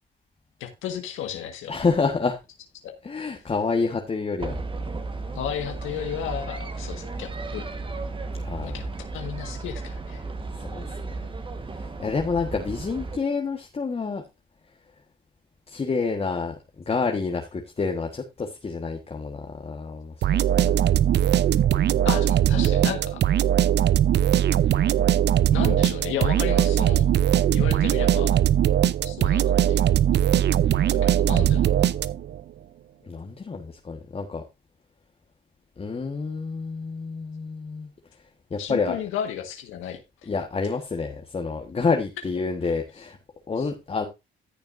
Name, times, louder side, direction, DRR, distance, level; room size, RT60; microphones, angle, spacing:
voice 1, 0.6-1.7 2.8-2.9 5.3-7.7 8.6-8.9 9.1-10.2 22.0-23.2 25.5-27.1 27.5-28.4 29.0-30.1 30.9-31.9 38.6-40.0 43.6-43.7, left 9 dB, 90° left, 5 dB, 1.5 m, -33 dB
voice 2, 1.7-2.4 3.0-4.6 8.3-8.9 10.6-11.0 11.7-14.2 15.7-20.7 33.0-34.4 35.8-37.9 38.5-39.0 40.2-43.2 43.5-44.1, left 4 dB, 30° left, 3 dB, 1.4 m, -28 dB
sound 1, 4.4-13.2, right 3 dB, 25° right, 1.3 m, -34 dB
sound 2, 20.2-32.4, right 10 dB, 60° right, 0.6 m, -20 dB
14.5 x 6.9 x 2.6 m, 0.24 s
cardioid pair, 90°, 20 cm